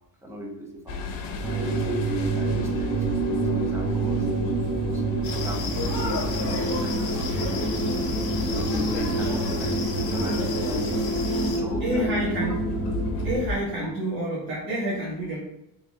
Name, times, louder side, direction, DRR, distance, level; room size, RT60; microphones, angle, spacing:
voice 1, 0.2-4.3 4.9-8.1 8.5-12.3 13.8-13.9, right 1 dB, 5° right, 0 dB, 0.5 m, -37 dB
sound 1, 0.9-13.6, left 2 dB, 70° left, 0.8 m, -34 dB
sound 2, 1.4-13.4, right 2 dB, 10° left, 1.1 m, -27 dB
sound 3, 5.2-11.6, left 3 dB, 45° left, 1.2 m, -32 dB
voice 2, 11.8-12.5 13.2-15.4, right 1 dB, 75° right, -7 dB, 1.5 m, -28 dB
3.5 x 3.1 x 2.6 m, 0.89 s
cardioid pair, 115°, 49 cm